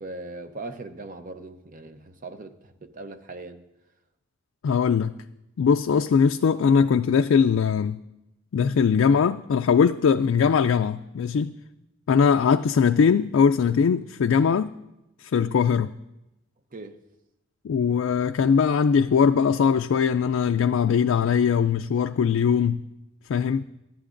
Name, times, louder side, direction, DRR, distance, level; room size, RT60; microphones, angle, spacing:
voice 1, 0.0-3.6 16.7-17.0, right 2 dB, 40° right, 0.7 m, -39 dB
voice 2, 4.6-5.2 5.6-8.0 8.5-11.5 12.1-14.7 15.2-15.9 17.6-22.8 23.3-23.6, left 6 dB, 80° left, 0.3 m, -21 dB
24.0 x 10.5 x 2.6 m
head